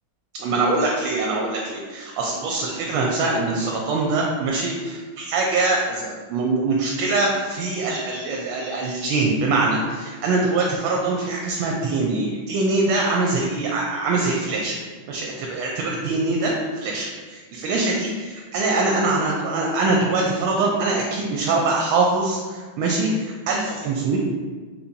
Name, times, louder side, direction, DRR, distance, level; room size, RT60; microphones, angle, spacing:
voice 1, 0.4-14.8 15.1-24.2, right 3 dB, 80° right, -1 dB, 1.5 m, -23 dB
4.4 x 4.0 x 2.7 m, 1.4 s
omnidirectional pair, 2.3 m